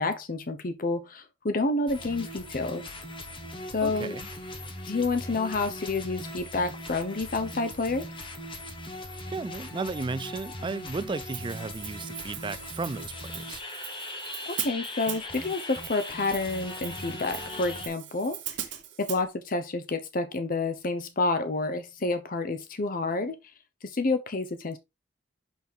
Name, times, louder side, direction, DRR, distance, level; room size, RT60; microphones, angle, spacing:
voice 1, 0.0-2.8 3.7-4.1 4.9-8.0 14.5-18.4 19.0-23.3 23.8-24.8, left 3 dB, 50° left, 0.8 m, -29 dB
sound 1, 1.9-17.9, left 1 dB, 30° left, 1.5 m, -39 dB
voice 2, 3.8-4.3 9.3-13.6, right 4 dB, 25° right, 0.3 m, -34 dB
Hi-hat, 11.3-19.2, right 12 dB, 85° right, 1.2 m, -40 dB
6.2 x 5.8 x 3.5 m
head